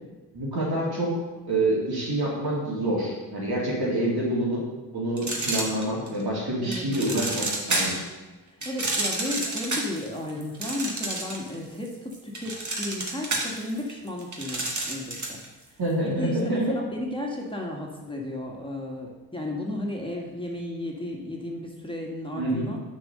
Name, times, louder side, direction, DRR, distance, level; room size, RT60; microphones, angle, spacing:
voice 1, 0.3-1.1 1.5-4.6 4.9-8.0 15.8-16.7 22.4-22.7, right 1 dB, 65° right, -4 dB, 2.7 m, -27 dB
sound 1, 5.2-6.2 6.7-8.1 8.6-11.5 11.9-15.5, right 2 dB, 45° right, 1.7 m, -29 dB
voice 2, 8.4-15.4 15.7-15.8 16.0-16.6 16.9-22.8, left 1 dB, 10° left, -1 dB, 1.7 m, -34 dB
6.2 x 4.4 x 6.5 m, 1.2 s
supercardioid pair, 45°, 40 cm